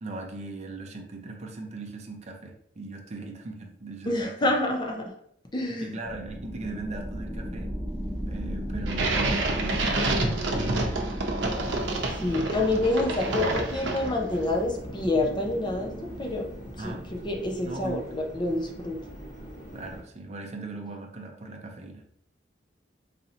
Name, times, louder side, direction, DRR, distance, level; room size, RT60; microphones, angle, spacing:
voice 1, 0.0-4.6 5.8-7.7 8.3-10.7 12.6-12.7 16.8-17.1 17.6-18.1 19.7-22.0, right 3 dB, 35° right, 3 dB, 0.5 m, -39 dB
voice 2, 4.1-5.1 5.5-5.9 12.1-16.5 16.8-16.9 17.2-19.0, left 2 dB, 25° left, 1 dB, 0.5 m, -27 dB
sound 1, 6.0-18.3, equal, 15° right, 1.4 m, -36 dB
sound 2, 8.9-14.4, right 2 dB, 75° right, 0.7 m, -28 dB
sound 3, 11.5-20.0, equal, 40° left, 1.1 m, -42 dB
4.0 x 2.8 x 2.7 m, 0.68 s
head